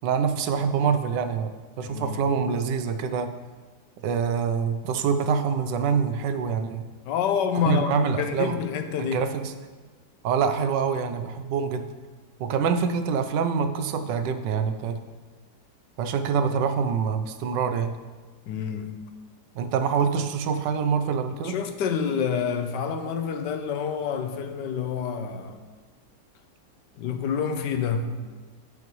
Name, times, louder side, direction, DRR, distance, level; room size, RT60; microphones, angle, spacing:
voice 1, 0.0-1.5 1.8-3.3 4.0-6.8 7.7-8.6 9.0-9.5 10.2-11.9 12.4-15.0 16.0-17.9 19.5-21.5, right 6 dB, 85° right, 1.3 m, -25 dB
voice 2, 1.8-2.3 7.0-9.3 18.5-19.0 21.4-25.6 27.0-28.2, left 7 dB, 85° left, 1.4 m, -28 dB
14.0 x 5.8 x 3.1 m
omnidirectional pair, 1.9 m